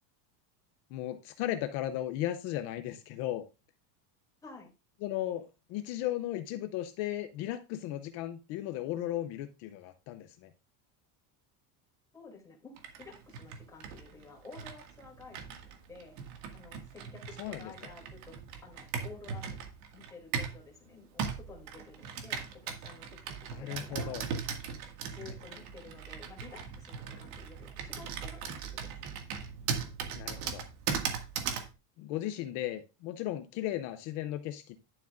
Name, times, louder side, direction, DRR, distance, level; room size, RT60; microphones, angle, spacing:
voice 1, 0.9-3.5 5.0-10.5 17.4-17.7 23.5-24.2 30.1-30.6 32.0-34.8, left 13 dB, 35° left, 0.4 m, -36 dB
voice 2, 4.4-4.7 12.1-16.2 16.5-19.6 19.9-24.2 25.1-29.2, left 4 dB, 10° left, 2.7 m, -52 dB
Computer keyboard, 12.8-20.6 21.2-31.7, right 6 dB, 75° right, 2.0 m, -39 dB
11.0 x 7.6 x 2.5 m
cardioid pair, 175°, 46 cm